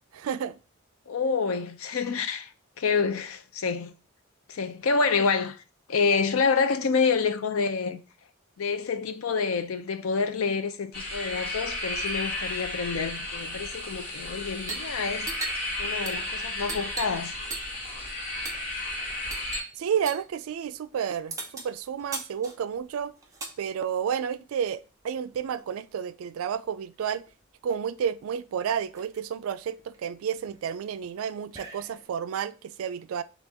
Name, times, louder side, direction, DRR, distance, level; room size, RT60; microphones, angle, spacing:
voice 1, 0.1-0.6 19.8-23.1 23.6-24.8 25.0-27.2 27.6-33.2, right 8 dB, 80° right, 0.3 m, -31 dB
voice 2, 1.1-2.5 2.8-3.9 4.5-5.6 5.9-8.0 8.6-15.3 15.8-17.3, left 5 dB, 80° left, 0.5 m, -27 dB
sound 1, 10.9-19.6, left 1 dB, 45° left, 1.5 m, -33 dB
sound 2, 14.6-14.9 15.2-17.3 17.5-17.9 18.4-18.7 19.3-19.7 20.1-20.3 21.3-23.6 24.6-25.7 26.9-27.0 27.3-27.9 28.4-28.5 28.7-29.2 29.7-32.2, right 3 dB, 15° right, 0.7 m, -39 dB
4.3 x 2.9 x 3.4 m
head